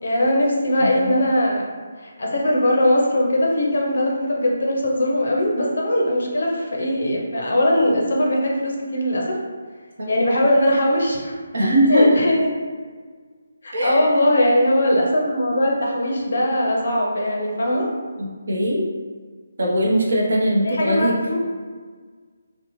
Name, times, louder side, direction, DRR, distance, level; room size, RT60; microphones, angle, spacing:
voice 1, 0.0-1.7 2.2-9.4 10.1-11.3 11.9-12.5 13.6-17.9 20.6-21.4, left 1 dB, 55° left, -1 dB, 0.6 m, -20 dB
voice 2, 0.8-1.2 10.0-10.1 11.5-12.2 13.7-14.1 18.2-18.9 19.6-21.1, equal, 55° right, -3 dB, 0.6 m, -20 dB
2.8 x 2.1 x 2.9 m, 1.5 s
hypercardioid pair, 180°, 0 cm